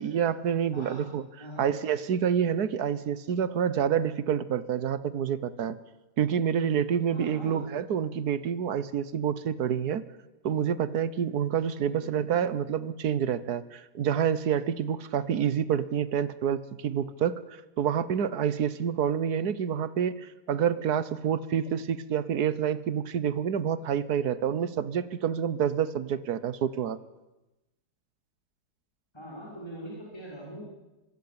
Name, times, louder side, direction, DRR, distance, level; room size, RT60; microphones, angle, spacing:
voice 1, 0.0-1.3 1.6-5.8 6.2-10.0 10.4-27.0, right 8 dB, 70° right, 16 dB, 1.6 m, -28 dB
voice 2, 7.1-7.6 11.9-12.1 29.1-30.6, equal, 15° left, -5 dB, 6.3 m, -42 dB
25.5 x 22.0 x 8.8 m, 1.0 s
omnidirectional pair, 1.8 m